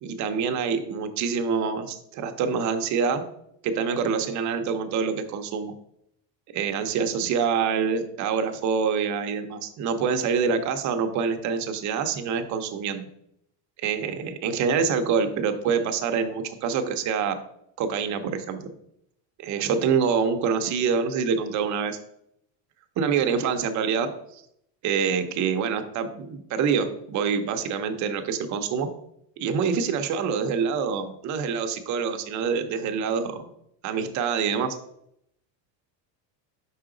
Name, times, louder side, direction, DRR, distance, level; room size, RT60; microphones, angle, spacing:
voice 1, 0.0-3.2 3.6-5.7 6.5-13.1 13.8-17.4 17.8-18.6 19.4-22.0 23.0-24.4 24.8-28.9 29.4-33.5 33.8-34.7, right 6 dB, 35° right, 7 dB, 0.6 m, -26 dB
5.6 x 4.8 x 3.7 m, 0.74 s
cardioid pair, 165°, 49 cm